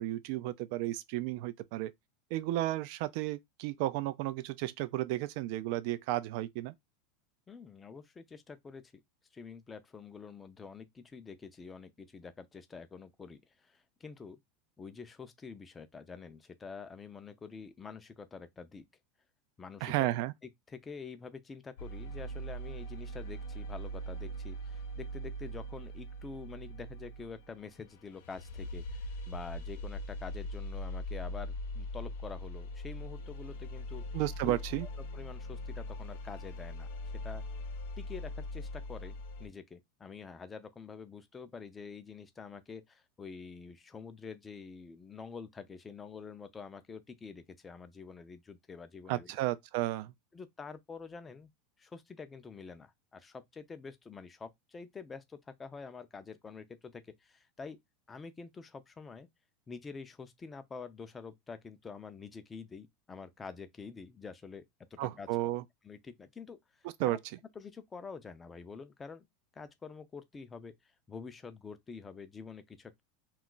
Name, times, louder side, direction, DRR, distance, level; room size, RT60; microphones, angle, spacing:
voice 1, 0.0-1.9 2.3-6.7 19.8-20.3 34.1-34.9 49.1-50.1 65.0-65.6 67.0-67.2, right 16 dB, 60° right, 0.3 m, -33 dB
voice 2, 7.5-8.8 9.3-14.4 14.8-18.8 19.6-19.9 20.7-34.0 34.4-36.9 37.1-37.4 38.0-49.3 50.3-51.5 51.8-57.8 58.1-59.3 59.7-64.6 64.9-65.3 65.8-67.2 67.6-69.3 69.5-70.7 71.1-73.0, left 5 dB, 20° left, 0.5 m, -47 dB
sound 1, 21.8-39.5, equal, 75° left, 0.6 m, -41 dB
2.3 x 2.1 x 3.8 m
hypercardioid pair, 110°, 0 cm